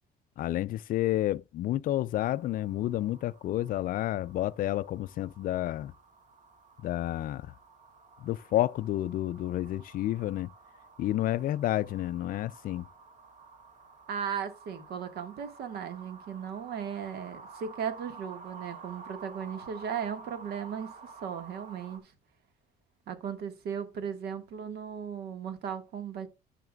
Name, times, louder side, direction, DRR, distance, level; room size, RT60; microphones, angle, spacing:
voice 1, 0.4-5.9 6.8-7.5 8.2-10.5 11.0-12.9, left 14 dB, 55° left, 0.4 m, -30 dB
sound 1, 2.2-22.0, right 5 dB, 45° right, 2.1 m, -51 dB
voice 2, 14.1-20.9 21.2-22.1 23.1-26.3, right 7 dB, 70° right, 1.6 m, -36 dB
14.0 x 5.8 x 2.3 m
cardioid pair, 110°, 17 cm